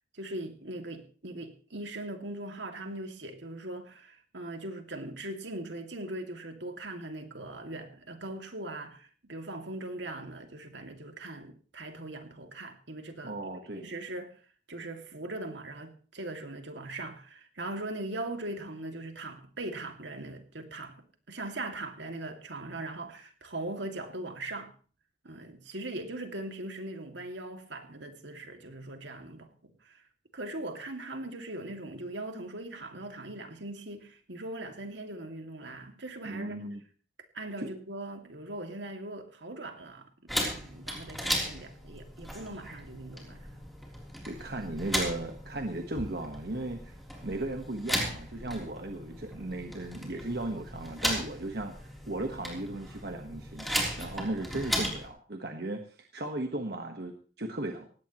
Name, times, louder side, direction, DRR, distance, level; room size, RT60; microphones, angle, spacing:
voice 1, 0.1-14.3 14.7-24.7 25.2-30.0 30.3-36.6 37.3-43.6, right 2 dB, 80° right, 2.4 m, -40 dB
voice 2, 13.2-13.9 36.2-36.8 37.6-37.7 44.2-53.7 54.0-57.9, right 1 dB, 60° right, 1.4 m, -36 dB
sound 1, 40.3-55.1, equal, ahead, 3.6 m, -36 dB
18.5 x 16.5 x 3.1 m
head